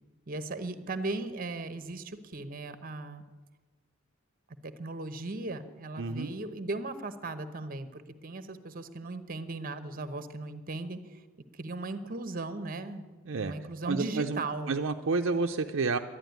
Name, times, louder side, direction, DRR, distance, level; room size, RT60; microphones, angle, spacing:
voice 1, 0.3-3.2 4.6-11.0 11.5-13.0 13.4-14.8, right 2 dB, 45° right, 11 dB, 0.9 m, -37 dB
voice 2, 6.0-6.3 13.3-13.5 13.8-16.0, right 4 dB, 65° right, 4 dB, 0.6 m, -30 dB
11.0 x 11.0 x 9.3 m, 1.3 s
head